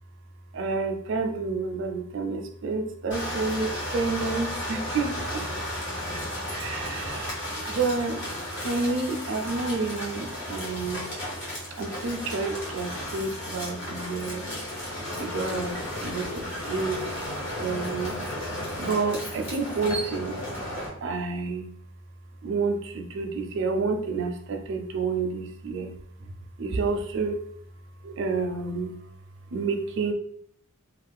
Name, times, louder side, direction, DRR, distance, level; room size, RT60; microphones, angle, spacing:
voice 1, 0.5-5.4 6.5-7.4 7.7-11.1 11.8-14.5 15.2-17.3 17.6-18.2 18.8-20.4 21.0-21.7 22.4-25.9 26.2-26.3 26.6-27.4 28.0-29.0 29.5-30.1, right 4 dB, 55° right, 4 dB, 0.4 m, -29 dB
sound 1, 3.1-20.9, left 1 dB, 55° left, 1.2 m, -34 dB
2.3 x 2.2 x 3.5 m, 0.62 s
head